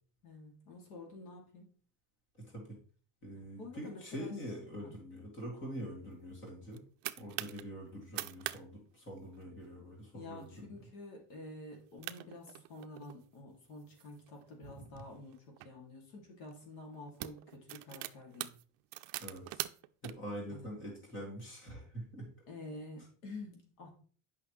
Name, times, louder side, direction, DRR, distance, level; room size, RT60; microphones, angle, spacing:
voice 1, 0.2-1.7 3.6-4.3 4.8-4.9 10.1-18.5 20.5-20.7 22.5-23.9, left 2 dB, 75° left, 1 dB, 2.7 m, -49 dB
voice 2, 3.2-6.8 7.2-10.7 14.6-15.0 19.2-19.7 20.0-22.3, equal, 25° left, -1 dB, 2.2 m, -45 dB
sound 1, 6.5-7.6 8.0-8.6 8.9-9.0 9.3-9.7 10.2-10.4 10.9-11.0 11.7-11.8 12.0-13.2 13.8-15.7 16.4-16.6 17.0-20.1, right 19 dB, 65° right, 0.5 m, -43 dB
8.4 x 5.7 x 3.2 m, 0.42 s
cardioid pair, 175°, 45 cm